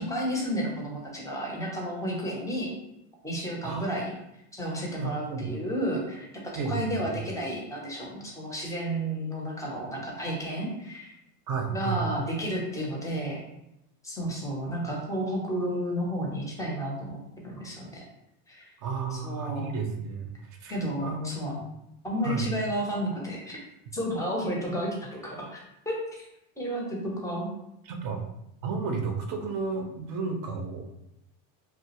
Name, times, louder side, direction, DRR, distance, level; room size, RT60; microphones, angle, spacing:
voice 1, 0.0-2.7 3.2-4.1 4.5-6.3 6.5-11.1 11.7-13.4 14.0-18.0 18.5-18.7 19.1-19.7 20.7-21.5 22.0-23.6 23.9-25.6 25.9-26.2 26.6-27.5, equal, 5° left, -2 dB, 0.5 m, -32 dB
voice 2, 5.0-5.5 6.6-6.9 11.5-12.0 18.8-20.3 20.6-21.7 22.2-22.5 27.8-28.2 28.6-30.9, right 5 dB, 40° right, 4 dB, 0.5 m, -32 dB
2.3 x 2.0 x 2.8 m, 0.82 s
supercardioid pair, 115°, 49 cm